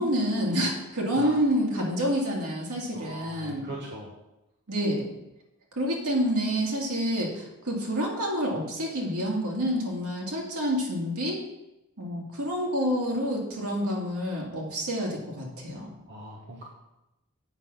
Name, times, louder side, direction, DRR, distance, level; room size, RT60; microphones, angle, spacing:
voice 1, 0.0-3.7 4.7-5.1 5.8-11.4 12.0-15.9, equal, 75° right, -2 dB, 2.4 m, -28 dB
voice 2, 2.9-4.1 16.1-16.6, right 1 dB, 55° right, -3 dB, 1.3 m, -40 dB
8.1 x 5.5 x 5.7 m, 0.92 s
head